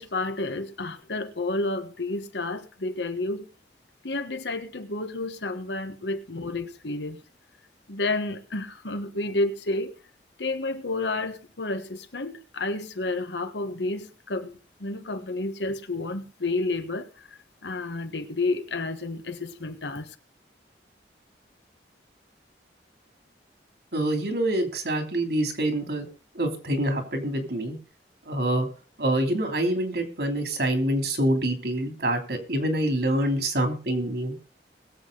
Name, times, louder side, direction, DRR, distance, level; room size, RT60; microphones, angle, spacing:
voice 1, 0.0-3.5 4.0-7.2 7.9-9.9 10.4-20.1, left 2 dB, 85° left, 1.4 m, -30 dB
voice 2, 23.9-26.1 26.3-27.8 28.3-28.7 29.0-34.4, right 1 dB, 65° right, 3.1 m, -26 dB
20.5 x 7.8 x 4.0 m
head